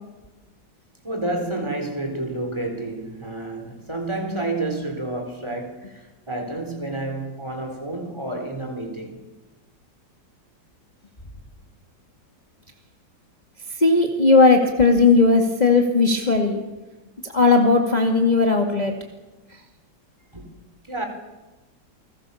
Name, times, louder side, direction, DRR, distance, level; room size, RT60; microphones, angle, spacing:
voice 1, 1.0-9.2 20.3-20.5 20.9-21.0, right 2 dB, 15° right, 4.3 m, -29 dB
voice 2, 13.8-16.6 17.2-18.9, left 3 dB, 25° left, 2.2 m, -17 dB
29.0 x 21.0 x 7.1 m
omnidirectional pair, 2.0 m